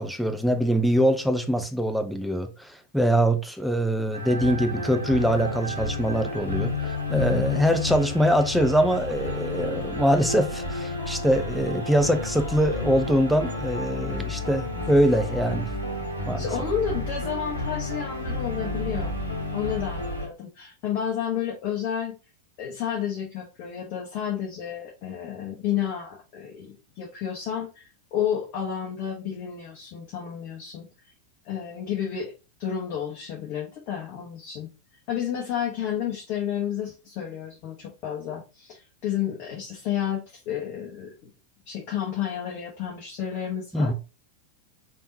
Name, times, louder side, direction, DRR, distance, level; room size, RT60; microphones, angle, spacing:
voice 1, 0.0-15.7 16.2-16.5 43.7-43.9, equal, ahead, 0.6 m, -23 dB
Epic Orchestra, 4.1-20.3, left 2 dB, 85° left, 1.2 m, -31 dB
voice 2, 16.4-19.2 19.5-22.2 22.6-27.8 28.1-30.9 31.4-32.3 32.6-34.7 35.1-41.3 41.7-43.9, left 9 dB, 40° left, 1.0 m, -31 dB
4.4 x 3.6 x 2.7 m
figure-of-eight pair, 90°, 0 cm